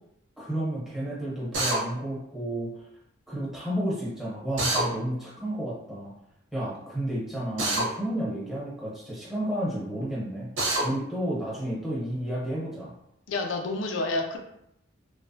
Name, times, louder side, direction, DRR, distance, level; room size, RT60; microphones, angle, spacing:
voice 1, 0.4-2.8 3.3-6.1 6.5-10.5 10.8-12.9, right 1 dB, ahead, -7 dB, 0.9 m, -31 dB
Drill, 1.5-1.8 4.6-4.9 7.6-7.9 10.6-10.8, right 2 dB, 80° right, 0.8 m, -25 dB
voice 2, 13.3-14.4, left 2 dB, 75° left, 3 dB, 0.4 m, -29 dB
3.0 x 2.2 x 2.6 m, 0.78 s
head